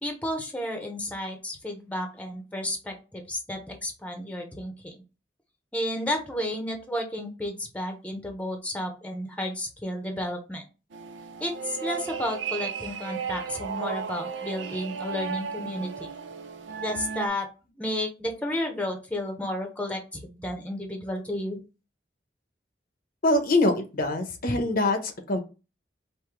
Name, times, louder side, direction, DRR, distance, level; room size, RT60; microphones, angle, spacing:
voice 1, 0.0-5.0 5.7-10.6 11.4-16.1 16.8-17.5 17.8-21.6, left 1 dB, 10° left, 4 dB, 0.8 m, -32 dB
sound 1, 10.9-17.3, right 6 dB, 90° right, 0.5 m, -35 dB
voice 2, 23.2-25.4, left 2 dB, 55° left, 6 dB, 0.8 m, -24 dB
4.8 x 2.6 x 3.7 m, 0.30 s
head